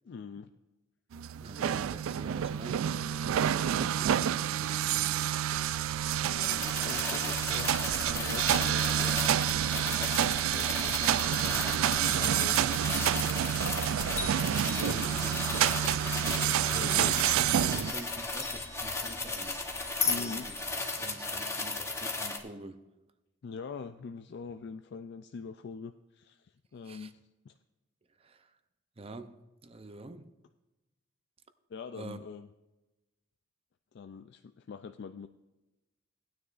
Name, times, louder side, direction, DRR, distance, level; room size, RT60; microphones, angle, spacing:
voice 1, 0.1-0.5 6.2-9.2 10.2-11.1 12.1-12.6 14.8-15.1 16.7-17.1 17.7-17.9 20.1-20.5 23.4-27.5 31.7-32.5 33.9-35.3, left 5 dB, 55° left, 0.3 m, -43 dB
sound 1, 1.1-17.9, right 10 dB, 80° right, 0.3 m, -28 dB
voice 2, 1.3-5.3 12.4-12.7 14.7-15.3 16.6-17.2 17.6-19.6 20.0-20.7 21.0-22.9 26.8-27.1 28.2-28.6 29.0-30.3 31.9-32.2, right 2 dB, 30° right, 0.6 m, -46 dB
sound 2, 5.5-20.6, left 5 dB, 35° left, 1.1 m, -42 dB
sound 3, 6.4-22.4, left 3 dB, 15° left, 0.9 m, -36 dB
17.0 x 9.5 x 2.5 m
head